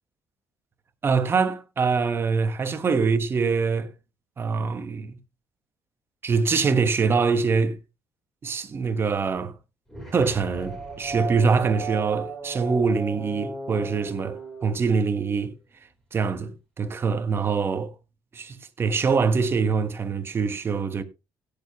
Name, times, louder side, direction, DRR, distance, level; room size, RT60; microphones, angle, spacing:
voice 1, 1.0-3.9 4.4-5.2 6.2-7.8 8.4-9.5 10.1-15.5 16.1-17.9 18.3-21.0, right 5 dB, 30° right, 1.2 m, -24 dB
sound 1, 9.9-15.4, right 3 dB, 5° left, 4.0 m, -35 dB
17.0 x 6.9 x 3.1 m
cardioid pair, 145°, 9 cm